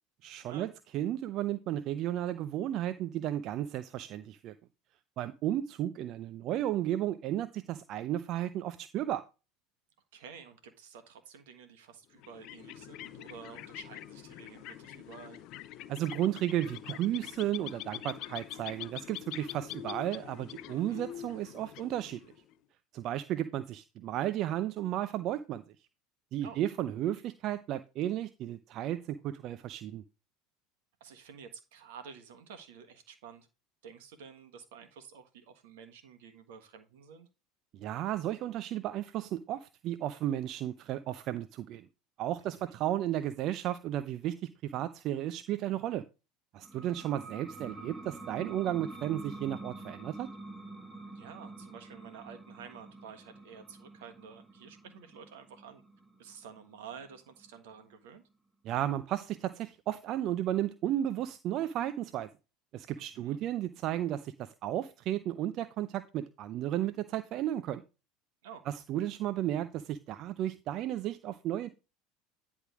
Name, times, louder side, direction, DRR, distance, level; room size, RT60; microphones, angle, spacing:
voice 1, 0.2-4.6 5.2-9.2 15.9-22.2 22.9-25.6 26.3-30.0 37.7-41.9 42.2-46.1 46.5-50.3 58.6-62.3 62.7-67.8 68.7-71.7, right 12 dB, 50° right, 0.5 m, -33 dB
voice 2, 10.1-15.5 20.7-21.0 26.4-26.6 31.0-33.5 33.8-37.3 42.4-42.8 51.1-55.8 56.2-58.2 63.0-63.4 68.4-68.6, right 7 dB, 70° right, 1.4 m, -50 dB
sound 1, 12.1-22.5, left 13 dB, 55° left, 0.5 m, -45 dB
sound 2, 46.6-57.9, right 2 dB, 20° right, 4.6 m, -47 dB
10.0 x 3.6 x 4.8 m
hypercardioid pair, 75°, 0 cm